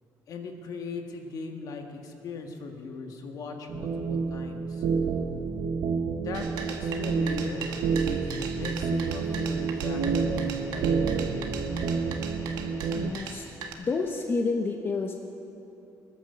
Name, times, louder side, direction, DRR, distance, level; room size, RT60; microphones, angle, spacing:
voice 1, 0.3-4.8 6.2-11.4, left 4 dB, 60° left, 3 dB, 1.6 m, -39 dB
sound 1, 3.7-13.1, right 5 dB, 70° right, 1.0 m, -29 dB
sound 2, 6.3-13.7, right 6 dB, 90° right, 1.2 m, -39 dB
voice 2, 12.9-13.4 13.8-15.2, left 4 dB, 30° left, 3 dB, 0.9 m, -29 dB
20.5 x 9.2 x 6.8 m, 2.9 s
cardioid pair, 120°, 7 cm